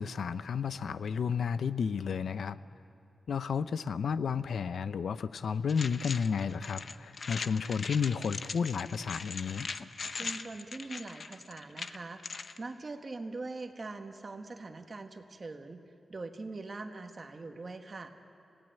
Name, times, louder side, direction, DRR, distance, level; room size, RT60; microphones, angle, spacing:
voice 1, 0.0-2.6 3.3-9.7, left 6 dB, 85° left, 14 dB, 0.6 m, -32 dB
sound 1, 5.7-12.6, left 4 dB, 45° left, 0.7 m, -41 dB
voice 2, 10.1-12.2 12.6-15.8 16.1-18.1, right 3 dB, 35° right, 5 dB, 1.4 m, -42 dB
27.0 x 17.5 x 9.2 m, 2.8 s
wide cardioid pair, 150°, 0 cm